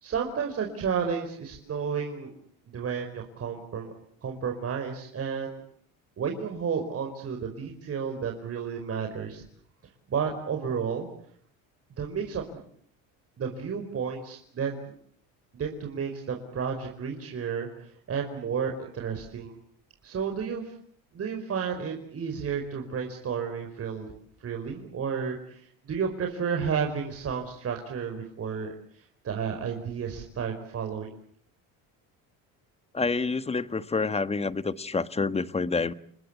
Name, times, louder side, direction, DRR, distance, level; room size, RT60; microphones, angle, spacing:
voice 1, 0.0-2.3 2.7-3.9 4.2-5.6 6.2-9.4 10.1-11.1 12.0-12.4 13.4-14.9 15.5-19.5 20.0-20.7 21.1-24.1 24.4-28.7 29.2-31.1, right 6 dB, 40° right, 3 dB, 5.0 m, -32 dB
voice 2, 32.9-35.9, left 4 dB, 15° left, 13 dB, 1.4 m, -28 dB
30.0 x 20.5 x 8.3 m, 0.64 s
cardioid pair, 100°, 35 cm